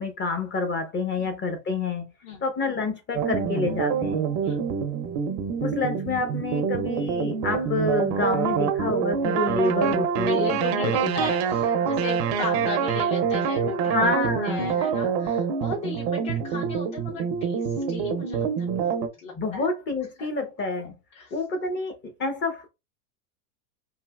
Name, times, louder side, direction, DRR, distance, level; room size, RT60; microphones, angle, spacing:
voice 1, 0.0-2.1 2.4-4.2 5.6-11.2 13.9-14.7 19.3-20.9 21.3-22.7, left 3 dB, 25° left, 0.8 m, -28 dB
sound 1, 3.1-19.1, right 7 dB, 50° right, 0.7 m, -26 dB
voice 2, 10.3-19.7 20.2-20.3 21.1-21.3, left 3 dB, 55° left, 1.4 m, -36 dB
3.2 x 2.6 x 2.4 m
hypercardioid pair, 115°, 46 cm